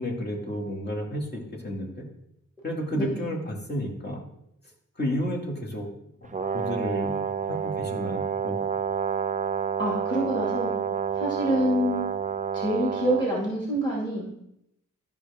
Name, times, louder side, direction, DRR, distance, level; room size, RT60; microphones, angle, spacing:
voice 1, 0.0-2.1 2.6-4.2 5.0-5.9 6.2-7.2 7.5-8.6, equal, 30° left, -2 dB, 2.3 m, -31 dB
voice 2, 2.9-3.4 9.8-12.1 12.5-14.3, equal, 15° left, -5 dB, 2.4 m, -27 dB
Brass instrument, 6.3-13.3, right 6 dB, 25° right, 0.4 m, -29 dB
13.0 x 5.5 x 3.6 m, 0.79 s
wide cardioid pair, 105°, 32 cm